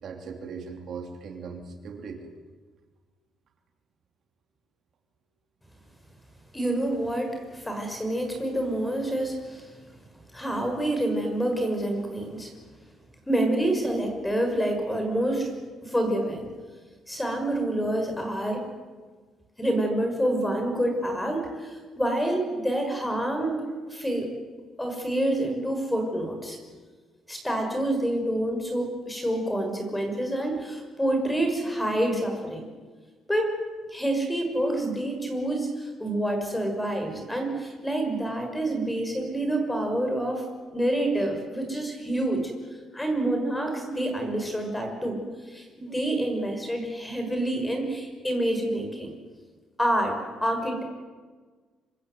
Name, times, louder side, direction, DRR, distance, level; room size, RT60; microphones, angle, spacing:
voice 1, 0.0-2.3, right 5 dB, 55° right, 4 dB, 2.9 m, -39 dB
voice 2, 6.5-9.7 10.3-12.5 13.3-15.5 15.8-16.4 17.1-18.6 19.6-24.3 24.8-26.6 27.3-32.7 33.3-33.6 33.9-40.4 40.7-42.5 42.9-49.1 49.8-50.2 50.4-50.8, right 1 dB, 5° left, 4 dB, 6.0 m, -27 dB
26.0 x 24.5 x 8.2 m, 1.4 s
cardioid pair, 150°, 0 cm